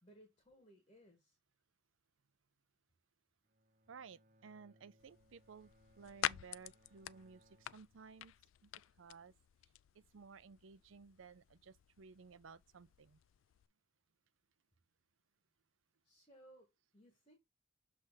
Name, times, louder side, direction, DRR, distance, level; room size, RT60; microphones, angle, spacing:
voice 1, 0.0-1.4 16.0-17.4, right 1 dB, 30° left, 1.9 m, -63 dB
Bowed string instrument, 3.4-8.7, equal, 40° right, 0.8 m, -71 dB
voice 2, 3.9-5.7 6.0-8.3 8.6-8.7 9.0-9.3 9.9-13.2, right 5 dB, 75° right, 0.5 m, -57 dB
sound 1, 5.0-13.7, left 12 dB, 75° left, 0.3 m, -48 dB
7.0 x 3.4 x 4.8 m
head